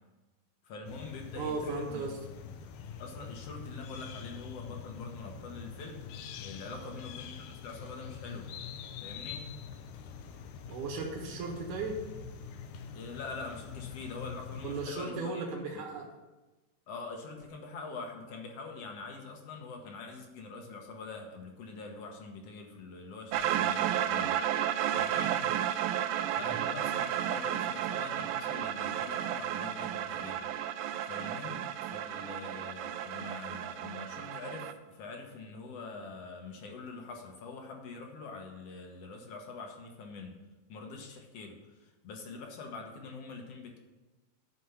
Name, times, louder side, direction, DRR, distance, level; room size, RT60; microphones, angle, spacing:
voice 1, 0.6-2.1 3.0-6.0 6.4-8.5 9.0-9.5 12.9-15.4 15.7-15.8 16.9-24.4 24.9-25.3 26.3-30.7 31.0-40.4 40.7-43.8, left 4 dB, 60° left, 2 dB, 1.9 m, -44 dB
sound 1, 0.8-14.9, left 7 dB, 75° left, 1.9 m, -45 dB
voice 2, 1.4-2.2 6.7-6.9 10.7-12.0 14.6-16.1 25.2-25.5 26.4-26.6, right 3 dB, 65° right, -3 dB, 2.6 m, -36 dB
sound 2, 23.3-34.7, right 10 dB, 80° right, 1.8 m, -32 dB
11.5 x 4.6 x 7.0 m, 1.1 s
omnidirectional pair, 4.0 m